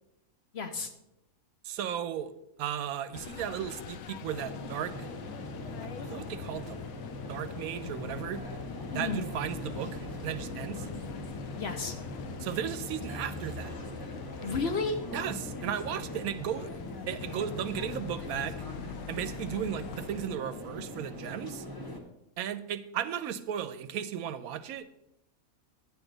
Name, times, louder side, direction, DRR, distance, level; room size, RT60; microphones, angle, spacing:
voice 1, 0.5-0.9 8.9-9.2 11.6-11.9 14.4-15.0, left 4 dB, 55° left, 7 dB, 0.8 m, -32 dB
voice 2, 1.6-2.3 2.6-5.1 6.0-6.9 7.3-8.4 8.9-10.9 12.4-13.7 15.1-16.7 17.1-18.6 19.1-21.7 22.4-24.9, right 9 dB, 80° right, 13 dB, 1.0 m, -35 dB
sound 1, 3.1-20.3, left 9 dB, 80° left, 1.0 m, -44 dB
sound 2, 4.3-22.0, equal, 15° left, 1.1 m, -41 dB
9.9 x 8.0 x 3.9 m, 0.86 s
omnidirectional pair, 1.5 m